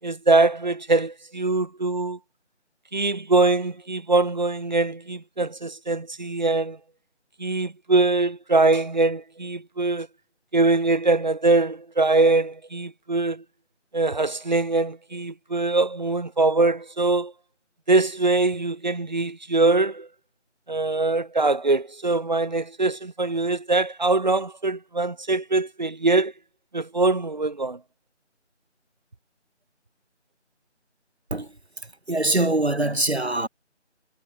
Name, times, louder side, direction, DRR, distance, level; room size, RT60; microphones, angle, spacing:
voice 1, 0.0-2.2 2.9-6.8 7.4-10.1 10.5-13.4 13.9-17.3 17.9-20.1 20.7-26.3 26.7-27.8, right 3 dB, 40° right, 6.0 m, -22 dB
voice 2, 32.1-33.5, right 1 dB, 60° right, 4.8 m, -23 dB
figure-of-eight pair, 165°, 36 cm